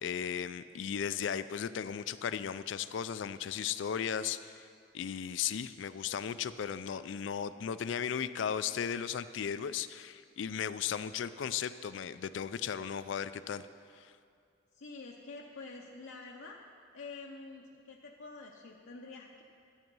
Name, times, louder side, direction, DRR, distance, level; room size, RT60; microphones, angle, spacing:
voice 1, 0.0-4.7 4.9-13.7 13.9-14.1, left 8 dB, 70° left, 14 dB, 0.4 m, -36 dB
voice 2, 14.7-16.6 16.9-19.4, left 3 dB, 90° left, -1 dB, 0.7 m, -47 dB
12.0 x 8.1 x 5.4 m, 2.3 s
head